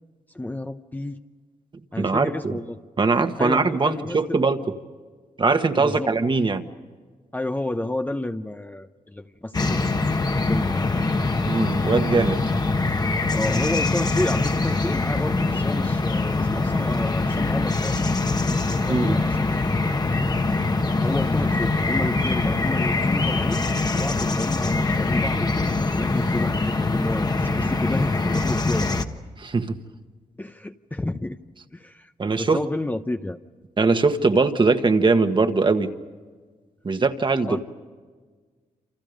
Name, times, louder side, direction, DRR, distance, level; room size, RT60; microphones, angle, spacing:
voice 1, 0.3-1.2 1.9-2.8 3.4-4.4 5.8-6.1 7.3-9.8 10.3-10.8 13.3-18.0 18.4-18.6 18.8-19.6 21.0-29.0 30.4-31.4 31.7-32.1 32.4-33.4 37.5-37.6, left 1 dB, 10° left, 7 dB, 0.8 m, -30 dB
voice 2, 2.0-2.6 3.0-4.6 5.4-6.6 11.4-12.4 18.9-19.2 29.4-29.8 32.2-32.6 33.8-35.9 36.8-37.6, right 4 dB, 35° right, 7 dB, 1.5 m, -21 dB
sound 1, 9.5-29.1, left 3 dB, 30° left, 1.4 m, -23 dB
28.0 x 27.5 x 5.3 m, 1.5 s
cardioid pair, 100°, 14 cm